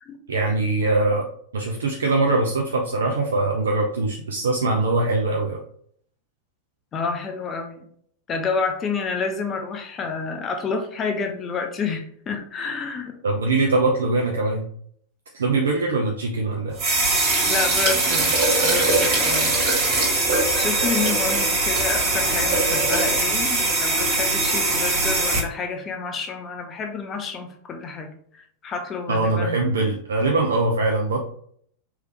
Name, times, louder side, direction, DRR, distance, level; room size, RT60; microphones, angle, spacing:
voice 1, 0.3-1.3 1.5-5.6 13.2-14.7 15.3-16.7 29.1-31.2, right 2 dB, 65° right, 1 dB, 0.5 m, -22 dB
voice 2, 6.9-7.8 8.3-13.2 17.5-18.3 18.6-19.5 20.6-29.6, left 5 dB, 25° left, 4 dB, 0.6 m, -29 dB
sound 1, 16.8-25.4, right 2 dB, 45° right, 1.9 m, -21 dB
4.7 x 3.2 x 3.1 m, 0.63 s
figure-of-eight pair, 90°, 0 cm